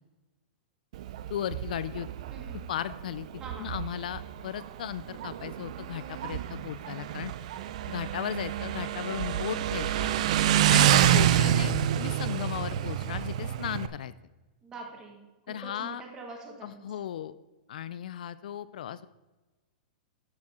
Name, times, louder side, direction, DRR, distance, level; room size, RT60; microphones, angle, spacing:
Motorcycle, 0.9-13.9, right 11 dB, 45° right, 0.5 m, -28 dB
voice 1, 1.3-2.1 2.7-3.3 3.6-7.3 7.9-10.1 10.7-14.1 15.5-16.0 16.6-17.3 17.7-19.1, left 10 dB, 65° left, 15 dB, 0.4 m, -36 dB
voice 2, 2.3-2.6 3.4-3.7 14.6-17.0, right 3 dB, 15° right, 2 dB, 1.4 m, -45 dB
12.5 x 6.1 x 4.3 m, 1.1 s
supercardioid pair, 175°, 5 cm